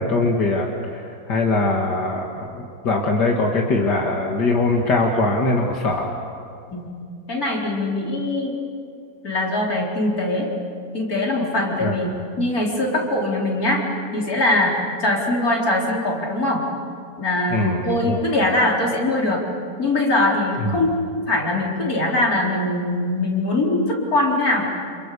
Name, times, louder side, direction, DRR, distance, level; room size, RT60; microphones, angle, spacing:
voice 1, 0.0-6.2 11.8-11.9 17.5-18.2 20.6-20.9, left 2 dB, 85° left, 0 dB, 2.6 m, -22 dB
voice 2, 7.3-8.5 9.2-10.5 10.9-13.8 14.1-16.6 17.2-19.5 19.8-24.6, left 2 dB, 60° left, -2 dB, 4.8 m, -22 dB
30.0 x 28.0 x 7.0 m, 2.4 s
omnidirectional pair, 1.8 m